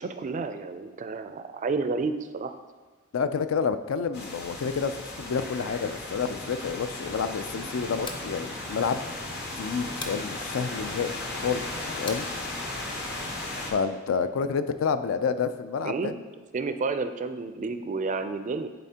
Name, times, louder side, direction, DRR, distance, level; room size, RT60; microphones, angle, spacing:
voice 1, 0.0-2.6 15.8-16.1 16.5-18.7, right 4 dB, 35° right, 9 dB, 0.3 m, -30 dB
voice 2, 3.1-9.1 9.6-11.7 12.0-12.3 13.7-16.1, left 6 dB, 70° left, 11 dB, 0.4 m, -29 dB
sound 1, 4.1-13.7, left 2 dB, 55° left, 1.1 m, -36 dB
sound 2, 8.0-8.3 10.0-10.3 12.1-12.3, left 2 dB, 25° left, 0.6 m, -38 dB
10.5 x 4.1 x 2.8 m, 1.4 s
head